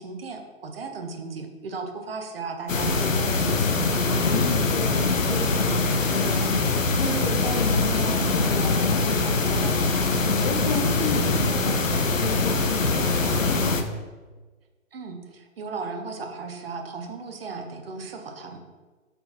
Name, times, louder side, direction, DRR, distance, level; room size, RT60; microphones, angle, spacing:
voice 1, 0.0-3.8 14.9-18.6, right 4 dB, 45° right, 5 dB, 0.9 m, -36 dB
sound 1, 2.7-13.8, left 3 dB, 75° left, 0.8 m, -23 dB
voice 2, 4.3-6.7 7.0-13.7, left 3 dB, 35° left, 2 dB, 1.1 m, -32 dB
5.3 x 4.2 x 4.2 m, 1.3 s
figure-of-eight pair, 135°, 39 cm